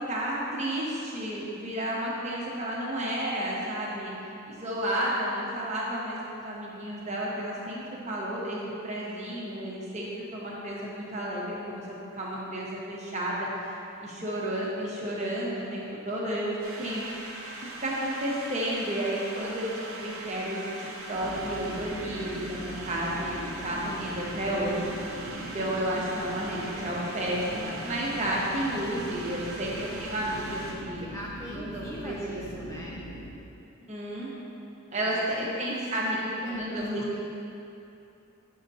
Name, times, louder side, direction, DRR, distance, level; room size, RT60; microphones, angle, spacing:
voice 1, 0.1-4.1 4.5-11.8 12.1-13.8 14.0-16.5 16.8-17.0 17.8-24.9 25.5-31.0 31.5-32.7 33.9-34.3 34.9-37.2, right 1 dB, 30° right, -5 dB, 1.0 m, -32 dB
sound 1, 16.6-30.7, right 2 dB, 80° right, 0.8 m, -41 dB
sound 2, 21.1-33.3, equal, 85° left, 1.4 m, -41 dB
voice 2, 23.3-23.8 31.0-33.0 34.9-37.2, equal, 15° left, -4 dB, 0.4 m, -44 dB
7.8 x 5.7 x 2.8 m, 2.7 s
head